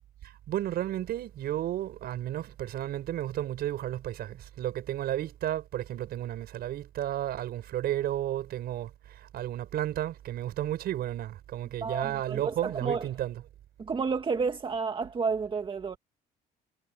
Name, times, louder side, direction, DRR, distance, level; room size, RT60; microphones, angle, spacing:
voice 1, 0.5-13.3, right 12 dB, 65° right, 5.9 m, -33 dB
voice 2, 11.8-13.1 13.8-16.0, right 5 dB, 30° right, 1.8 m, -31 dB
cardioid pair, 110°, 17 cm